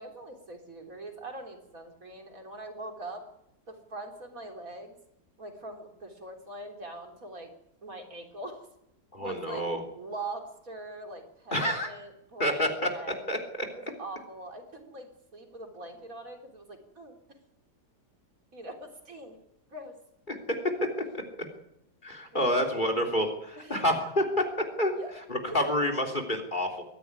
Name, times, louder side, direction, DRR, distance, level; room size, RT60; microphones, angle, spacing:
voice 1, 0.0-3.2 3.7-5.0 5.4-7.5 7.8-8.7 9.2-9.6 9.9-13.2 13.7-17.2 18.5-19.4 19.7-19.9 22.4-22.7 23.6-23.9 25.0-25.1 25.5-25.7, right 2 dB, 55° right, 3 dB, 4.0 m, -42 dB
voice 2, 9.1-9.8 11.5-11.9 12.4-12.7 13.3-13.4 20.3-20.4 21.1-21.2 22.0-24.2 24.8-24.9 25.3-26.7, equal, 30° left, 6 dB, 3.5 m, -28 dB
22.0 x 15.5 x 9.7 m, 0.82 s
omnidirectional pair, 1.8 m